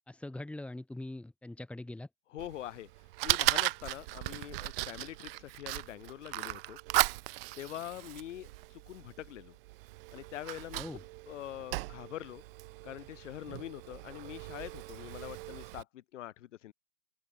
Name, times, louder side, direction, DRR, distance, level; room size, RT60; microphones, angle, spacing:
voice 1, 0.1-2.1 10.8-11.0, left 1 dB, 5° left, 5.2 m, -42 dB
voice 2, 2.3-2.9 3.2-6.8 7.6-9.5 10.1-10.8 11.3-12.4 12.8-16.7, left 13 dB, 50° left, 2.6 m, -44 dB
Fire, 2.4-15.8, right 21 dB, 35° right, 2.9 m, -37 dB
hypercardioid pair, 145°, 47 cm